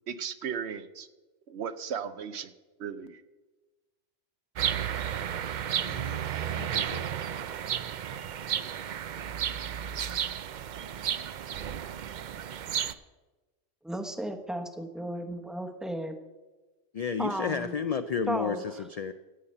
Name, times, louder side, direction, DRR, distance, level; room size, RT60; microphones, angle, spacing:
voice 1, 0.1-1.1 1.5-2.5 2.8-3.2, right 7 dB, 75° right, 12 dB, 1.0 m, -36 dB
sound 1, 4.6-12.9, right 9 dB, 55° right, 0.5 m, -33 dB
voice 2, 5.8-7.1 16.9-19.1, left 6 dB, 60° left, 10 dB, 0.4 m, -33 dB
voice 3, 13.8-16.1 17.2-17.7 18.3-18.6, right 1 dB, ahead, 6 dB, 0.9 m, -34 dB
16.0 x 5.7 x 7.7 m, 1.2 s
omnidirectional pair, 1.1 m